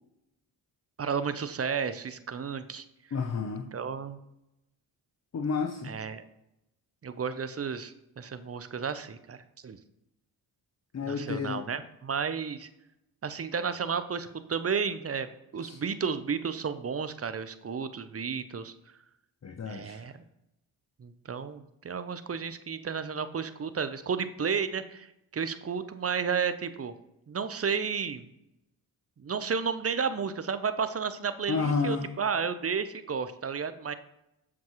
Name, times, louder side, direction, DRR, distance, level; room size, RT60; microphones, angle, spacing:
voice 1, 1.0-2.8 3.7-4.2 5.9-6.2 7.0-9.4 9.6-9.8 11.1-12.7 13.2-18.7 19.6-20.2 21.0-25.1 25.3-26.9 27.3-28.3 29.2-33.9, right 6 dB, 30° right, 12 dB, 0.6 m, -32 dB
voice 2, 3.1-3.7 5.3-6.0 10.9-11.7 15.6-15.8 19.4-20.0 31.5-32.1, left 5 dB, 35° left, 3 dB, 0.7 m, -31 dB
7.2 x 6.0 x 3.0 m, 0.87 s
hypercardioid pair, 40°, 48 cm